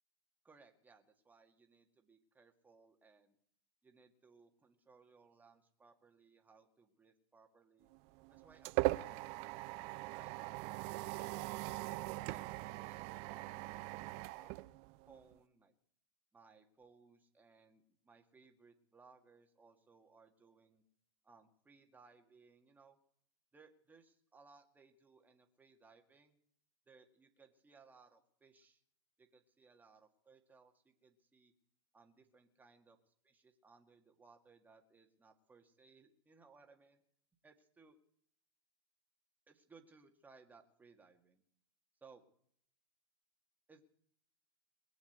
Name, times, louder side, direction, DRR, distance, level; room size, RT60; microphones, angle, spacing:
voice 1, 0.4-3.4 3.8-7.9 8.3-9.6 10.1-11.7 12.3-14.7 15.1-15.7 16.3-20.8 21.2-23.0 23.5-26.4 26.9-28.8 29.2-31.5 31.9-37.0 37.4-38.0 39.5-41.4 42.0-42.2 43.7-43.8, right 4 dB, 10° right, 4 dB, 2.1 m, -64 dB
sound 1, 7.9-15.3, right 21 dB, 45° right, 0.6 m, -40 dB
21.5 x 7.3 x 8.1 m, 0.66 s
hypercardioid pair, 120°, 14 cm